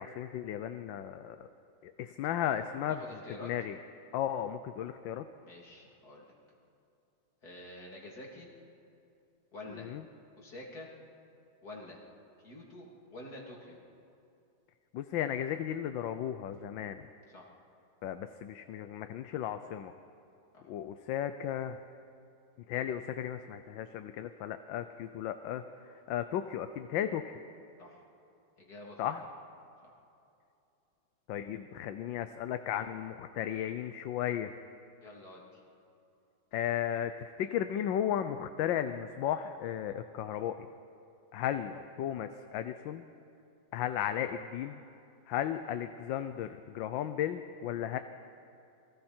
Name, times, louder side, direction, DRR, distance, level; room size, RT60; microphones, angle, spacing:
voice 1, 0.0-1.5 1.8-3.0 3.4-3.8 4.1-5.3 9.8-10.0 14.9-17.1 18.0-19.9 20.6-21.8 22.7-25.6 26.1-27.4 29.0-29.2 31.3-34.5 36.5-40.7 41.3-43.1 43.7-44.8 45.3-48.0, left 10 dB, 75° left, 9 dB, 1.4 m, -35 dB
voice 2, 3.0-3.5 5.5-6.3 7.4-8.5 9.5-9.9 10.4-10.9 11.6-12.0 12.4-13.8 17.3-17.5 20.5-20.7 27.8-28.0 28.6-29.2 29.8-29.9 35.0-35.6, left 1 dB, 50° left, -2 dB, 3.6 m, -48 dB
28.5 x 23.0 x 4.4 m, 2.6 s
omnidirectional pair, 2.1 m